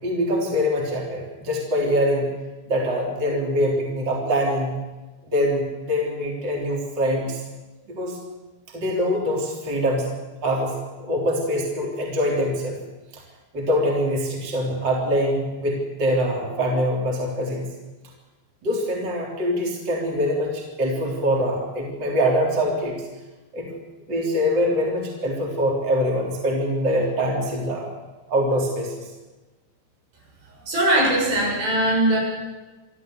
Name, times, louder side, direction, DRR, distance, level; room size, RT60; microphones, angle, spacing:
voice 1, 0.0-2.3 2.7-4.8 5.3-7.4 7.9-8.2 8.7-10.2 10.4-12.8 13.1-13.2 13.5-17.7 18.6-23.0 23.5-23.7 24.1-27.9 28.3-29.1, equal, 25° right, -1 dB, 3.8 m, -24 dB
voice 2, 30.6-32.2, right 1 dB, 70° right, -2 dB, 9.0 m, -20 dB
27.5 x 13.0 x 8.0 m, 1.2 s
omnidirectional pair, 5.0 m